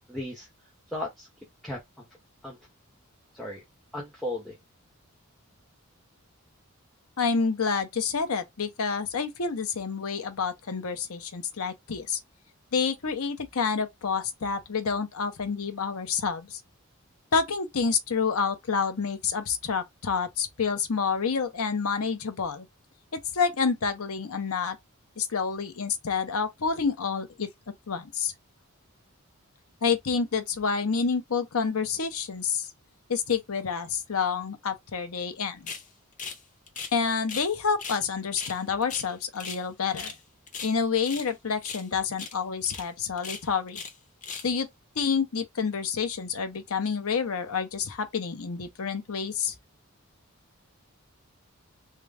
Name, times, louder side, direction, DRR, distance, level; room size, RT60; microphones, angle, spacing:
voice 1, 0.1-0.5 0.9-1.3 1.6-2.0 2.4-2.6 3.3-3.6 3.9-4.5, left 1 dB, ahead, 0.8 m, -35 dB
voice 2, 7.2-12.2 12.7-16.6 17.3-22.7 23.1-24.8 25.2-27.5 27.9-28.3 29.8-32.7 33.1-35.7 36.9-40.1 40.6-43.8 44.4-44.7 45.0-49.5, left 5 dB, 80° left, 0.8 m, -28 dB
sound 1, 35.7-35.9 36.2-36.4 36.7-37.5 37.8-38.0 38.3-39.6 39.9-40.2 40.5-41.3 41.6-41.9 42.1-42.4 42.6-42.8 43.2-43.9 44.2-44.5, left 5 dB, 35° left, 0.7 m, -38 dB
3.7 x 2.3 x 3.3 m
head